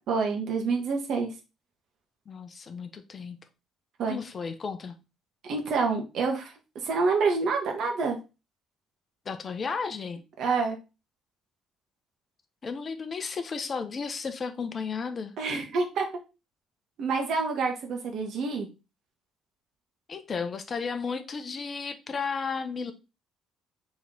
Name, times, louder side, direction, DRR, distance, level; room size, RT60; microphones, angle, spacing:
voice 1, 0.1-1.3 4.0-4.2 5.4-6.5 6.8-8.2 10.4-10.8 15.4-16.1 17.0-18.7, right 4 dB, 60° right, 1.1 m, -27 dB
voice 2, 2.3-3.4 4.1-5.0 9.3-10.2 12.6-15.4 20.1-22.9, left 5 dB, 40° left, 0.6 m, -33 dB
4.1 x 3.0 x 3.8 m
hypercardioid pair, 50°, 0 cm